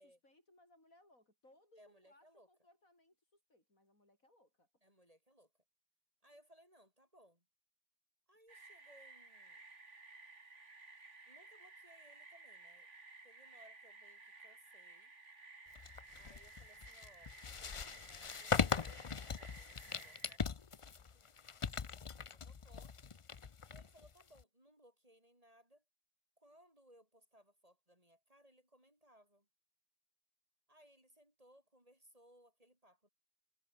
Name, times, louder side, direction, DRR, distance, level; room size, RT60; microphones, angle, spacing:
voice 1, 0.0-4.7, left 1 dB, 70° left, 8.5 m, -68 dB
voice 2, 1.8-2.5 4.8-5.5 6.2-7.4 8.3-9.6 11.3-12.9 13.2-15.1 16.2-21.2 21.7-23.0 23.7-25.8 26.4-29.5 30.7-33.1, equal, 25° right, 7.4 m, -66 dB
sound 1, 8.5-20.4, right 3 dB, 55° right, 3.2 m, -57 dB
sound 2, 15.8-24.4, left 6 dB, 45° left, 0.4 m, -40 dB
omnidirectional pair, 1.5 m